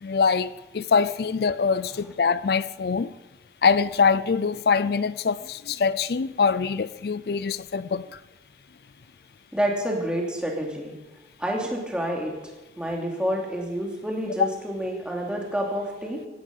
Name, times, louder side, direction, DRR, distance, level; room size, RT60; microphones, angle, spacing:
voice 1, 0.0-3.1 3.6-8.2 14.4-14.5, left 5 dB, 60° left, 0.4 m, -23 dB
voice 2, 9.5-10.9 11.4-12.3 12.8-16.2, equal, 5° right, 2.8 m, -28 dB
16.5 x 15.5 x 5.4 m
head